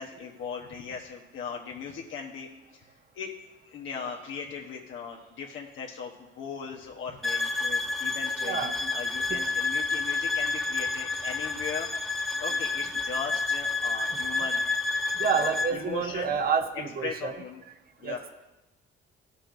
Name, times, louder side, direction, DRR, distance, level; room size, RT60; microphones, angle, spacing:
voice 1, 0.0-2.9 3.1-3.3 3.6-14.6 15.0-16.3 17.0-17.6 18.0-18.2, left 6 dB, 80° left, -1 dB, 1.2 m, -38 dB
sound 1, 7.2-15.7, left 3 dB, ahead, 1.4 m, -29 dB
voice 2, 8.4-8.8 9.3-9.4 14.0-14.4 15.2-17.3 18.0-18.2, right 6 dB, 50° right, 7 dB, 1.0 m, -29 dB
16.0 x 6.8 x 2.7 m, 1.0 s
cardioid pair, 90°, 20 cm